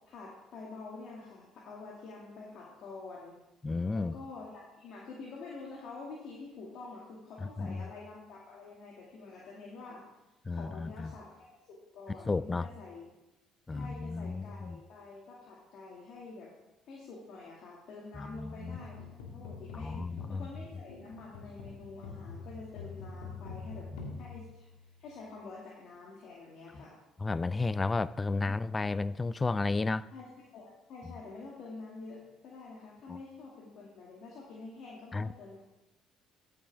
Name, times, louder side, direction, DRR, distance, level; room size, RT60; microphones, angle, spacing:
voice 1, 0.1-3.4 3.9-10.2 10.5-13.1 13.7-16.5 16.8-19.1 19.3-24.7 25.0-26.9 30.1-35.6, left 3 dB, 65° left, -4 dB, 2.3 m, -47 dB
voice 2, 3.6-4.1 7.6-7.9 10.5-11.1 12.3-12.7 13.7-14.8 18.2-18.8 19.7-20.5 23.9-24.2 27.2-30.1 33.1-33.2 35.1-35.3, left 3 dB, 25° left, 18 dB, 0.3 m, -33 dB
sound 1, 18.6-25.2, left 4 dB, 85° left, 1.8 m, -46 dB
14.0 x 7.1 x 3.6 m, 0.94 s
supercardioid pair, 65°, 0 cm